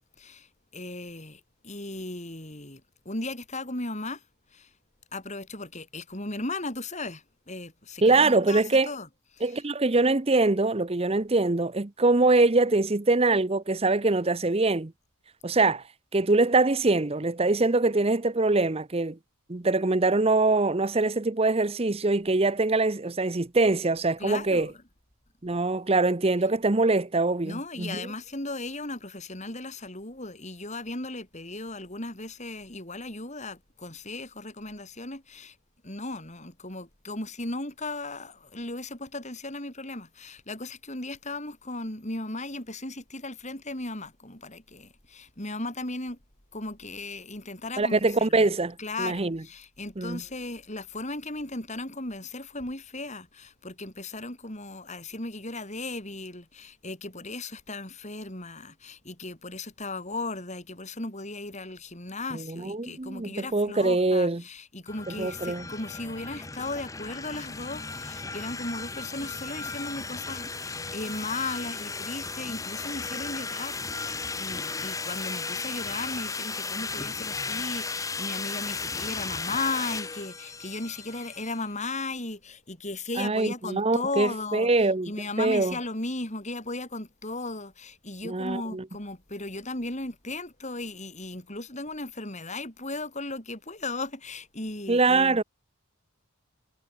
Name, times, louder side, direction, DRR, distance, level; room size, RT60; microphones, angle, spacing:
voice 1, 0.2-4.3 4.5-4.7 5.1-9.1 9.3-9.6 24.2-24.8 27.4-35.6 35.8-46.2 46.5-48.5 48.8-84.7 85.0-95.4, left 2 dB, 30° left, 5.3 m, -36 dB
voice 2, 8.0-8.9 9.4-14.9 15.4-15.8 16.1-19.2 19.5-24.7 25.4-28.0 47.8-49.4 50.0-50.2 62.3-64.4 65.2-65.6 83.2-85.1 85.4-85.7 88.2-88.8 94.9-95.4, right 3 dB, 25° right, 0.7 m, -23 dB
sound 1, 64.9-81.7, left 4 dB, 15° left, 0.8 m, -35 dB
head